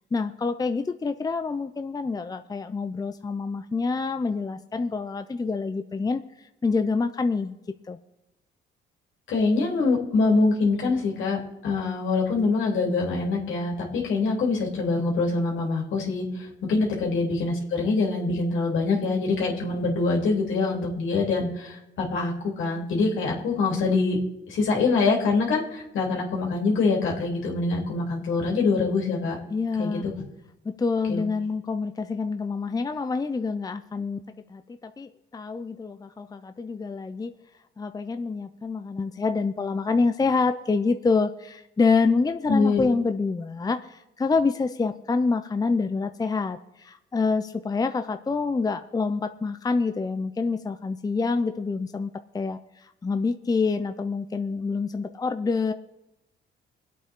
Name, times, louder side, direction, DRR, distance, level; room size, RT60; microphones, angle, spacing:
voice 1, 0.1-7.6 7.9-8.0 29.5-30.1 30.6-34.2 34.5-37.3 37.8-55.7, left 4 dB, 20° left, 9 dB, 0.6 m, -27 dB
voice 2, 9.3-24.2 24.5-29.4 29.8-30.1 31.1-31.2 42.5-42.8, left 3 dB, 75° left, -1 dB, 3.3 m, -24 dB
23.5 x 8.4 x 3.7 m, 0.91 s
cardioid pair, 90°, 20 cm